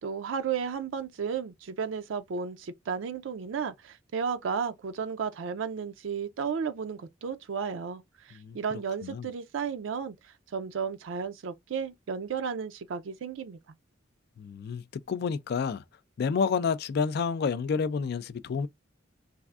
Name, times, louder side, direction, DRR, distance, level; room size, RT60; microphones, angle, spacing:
voice 1, 0.0-13.6, right 6 dB, 90° right, 0.4 m, -33 dB
voice 2, 14.4-15.8 16.2-18.7, left 5 dB, 55° left, 0.3 m, -29 dB
3.3 x 2.5 x 2.3 m
head